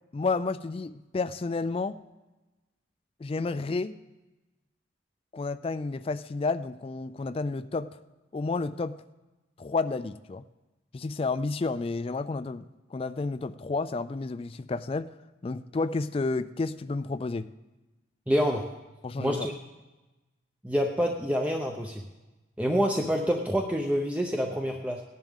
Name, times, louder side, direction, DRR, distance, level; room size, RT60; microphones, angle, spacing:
voice 1, 0.1-2.0 3.2-4.0 5.3-7.9 8.3-9.0 9.6-10.4 10.9-15.1 15.4-17.5 19.0-19.5, left 3 dB, 30° left, 13 dB, 0.3 m, -31 dB
voice 2, 18.3-18.7 19.2-19.5 20.6-22.0 22.6-25.0, equal, 5° right, 2 dB, 0.6 m, -27 dB
18.0 x 10.5 x 3.6 m, 1.1 s
head